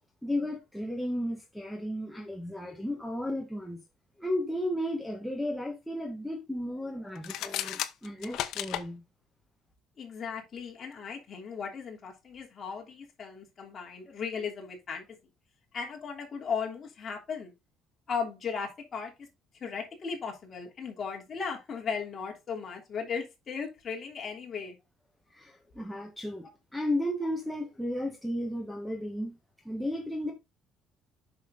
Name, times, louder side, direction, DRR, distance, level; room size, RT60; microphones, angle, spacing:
voice 1, 0.2-3.8 4.2-9.0 25.3-29.4 29.6-30.3, left 1 dB, ahead, 1.4 m, -34 dB
sound 1, 7.2-8.9, left 12 dB, 70° left, 0.9 m, -34 dB
voice 2, 10.0-15.2 15.7-17.5 18.1-19.1 19.5-24.8, left 6 dB, 35° left, 3.1 m, -36 dB
8.3 x 6.1 x 3.7 m
cardioid pair, 150°, 0 cm